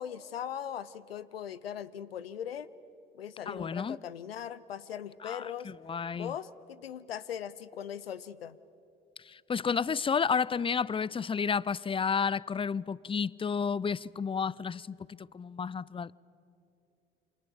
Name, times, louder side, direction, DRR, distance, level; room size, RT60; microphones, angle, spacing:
voice 1, 0.0-2.7 3.1-5.7 6.1-8.6, left 9 dB, 85° left, 0.6 m, -40 dB
voice 2, 3.5-4.0 5.2-6.3 9.3-16.2, left 6 dB, 20° left, 0.5 m, -31 dB
28.5 x 26.5 x 7.1 m
figure-of-eight pair, 50°, 29 cm